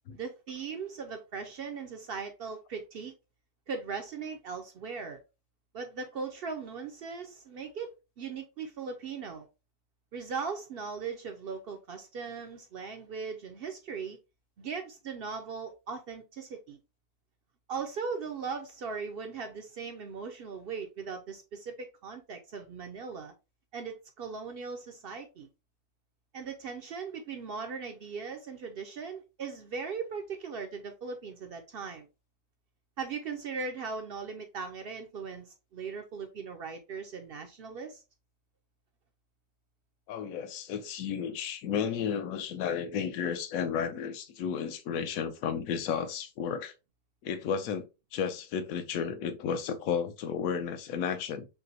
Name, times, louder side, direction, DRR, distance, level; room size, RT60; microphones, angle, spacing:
voice 1, 0.1-3.1 3.7-5.2 5.7-9.5 10.1-14.2 14.6-16.8 17.7-23.3 23.7-25.5 26.3-32.1 33.0-38.0, right 5 dB, 70° right, 0.5 m, -39 dB
voice 2, 40.1-46.7 47.2-51.5, left 7 dB, 75° left, 1.0 m, -33 dB
5.7 x 2.0 x 2.8 m
omnidirectional pair, 1.5 m